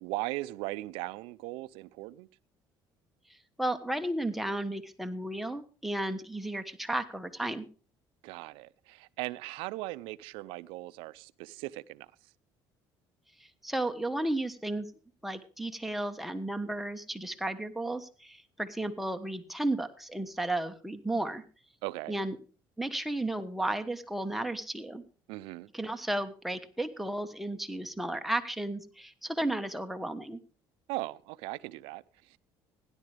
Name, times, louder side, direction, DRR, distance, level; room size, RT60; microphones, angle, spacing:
voice 1, 0.0-2.3 8.2-12.1 21.8-22.1 25.3-25.7 30.9-32.4, right 19 dB, 85° right, 0.5 m, -38 dB
voice 2, 3.6-7.6 13.6-14.9 15.2-21.4 22.1-22.4 22.8-25.0 25.7-30.4, right 1 dB, ahead, 1.2 m, -33 dB
16.5 x 11.0 x 3.4 m
cardioid pair, 115°, 9 cm